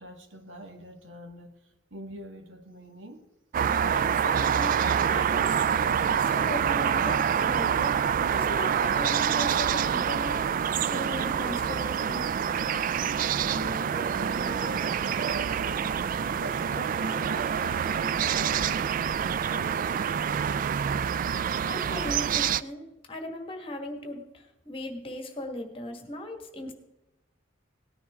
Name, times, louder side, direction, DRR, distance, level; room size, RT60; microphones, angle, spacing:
voice 1, 0.0-1.5 1.9-3.2 13.4-16.0 16.4-18.9 19.5-20.9, right 1 dB, 70° right, 5 dB, 1.7 m, -42 dB
sound 1, 3.5-22.6, right 8 dB, 45° right, 0.3 m, -26 dB
voice 2, 3.9-5.5 6.1-10.4 10.7-12.3 21.7-26.7, left 1 dB, 30° left, 5 dB, 1.6 m, -38 dB
sound 2, 12.3-19.5, right 1 dB, 25° right, 0.9 m, -47 dB
18.5 x 10.0 x 3.6 m, 0.95 s
head